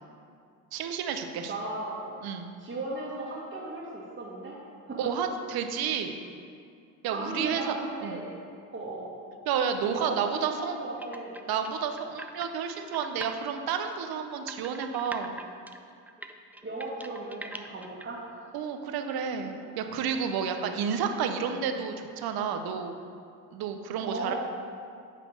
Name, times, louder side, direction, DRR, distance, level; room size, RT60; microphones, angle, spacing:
voice 1, 0.7-1.5 2.2-2.5 5.0-6.2 7.0-7.8 8.0-8.2 9.5-10.8 11.5-15.4 18.5-23.0 23.5-24.3, right 7 dB, 70° right, 6 dB, 0.8 m, -31 dB
voice 2, 1.4-2.2 2.6-4.6 4.9-5.1 7.1-8.2 8.7-9.1 9.9-11.4 16.6-18.4 24.0-24.3, right 2 dB, 30° right, -7 dB, 1.6 m, -36 dB
sound 1, 11.0-13.3 13.7-18.1, right 2 dB, 5° right, 0.4 m, -42 dB
8.5 x 3.4 x 6.4 m, 2.3 s
supercardioid pair, 65°, 38 cm